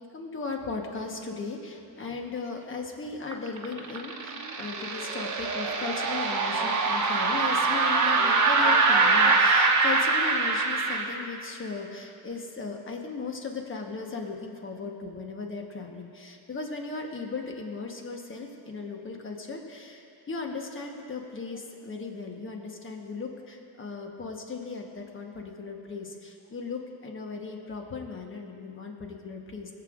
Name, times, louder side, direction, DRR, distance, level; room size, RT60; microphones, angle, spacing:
voice 1, 0.0-29.7, left 4 dB, 30° left, 2 dB, 1.2 m, -37 dB
sound 1, 3.3-11.0, right 3 dB, 45° right, 1.0 m, -24 dB
21.5 x 7.9 x 2.5 m, 2.6 s
cardioid pair, 135°, 40 cm